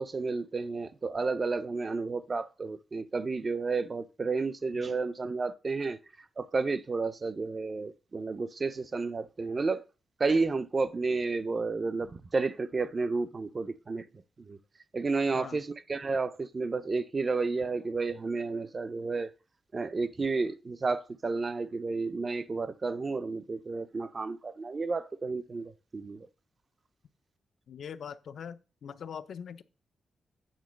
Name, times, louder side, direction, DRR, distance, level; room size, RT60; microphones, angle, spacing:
voice 1, 0.0-6.0 6.4-9.8 10.2-14.1 14.4-14.6 14.9-19.3 19.7-26.3, right 4 dB, 30° right, 0.4 m, -31 dB
voice 2, 27.7-29.6, left 7 dB, 65° left, 0.5 m, -42 dB
8.8 x 3.8 x 6.2 m
wide cardioid pair, 160°, 0 cm